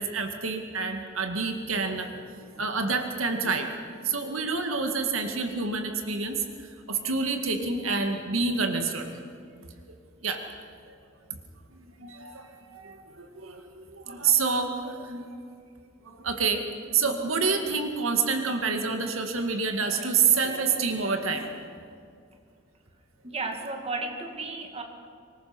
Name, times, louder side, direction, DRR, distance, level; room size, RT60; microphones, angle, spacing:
voice 1, 0.0-2.1 2.4-3.8 4.0-6.5 6.9-9.2 9.9-10.0 10.2-10.5 10.9-11.0 11.3-11.4 11.7-15.4 16.0-21.5, right 5 dB, 80° right, 5 dB, 2.1 m, -28 dB
voice 2, 23.2-24.8, right 3 dB, 30° right, 3 dB, 2.2 m, -33 dB
24.5 x 20.5 x 6.1 m, 2.3 s
head